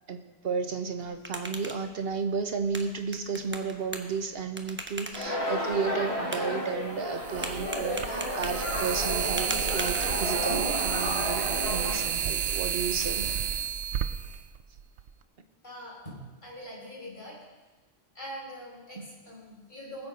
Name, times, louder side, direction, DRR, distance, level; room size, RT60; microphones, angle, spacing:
voice 1, 0.1-13.3 19.0-19.1, right 5 dB, 65° right, 7 dB, 1.3 m, -33 dB
sound 1, 0.9-10.6, right 1 dB, 10° right, 1.0 m, -42 dB
sound 2, 5.1-12.0, left 1 dB, 70° left, 4.1 m, -32 dB
sound 3, 5.7-5.8 7.2-15.1, right 8 dB, 90° right, 0.9 m, -31 dB
voice 2, 15.6-17.4 18.1-20.1, equal, 50° left, -6 dB, 5.4 m, -43 dB
20.0 x 7.7 x 5.1 m, 1.2 s
omnidirectional pair, 1.1 m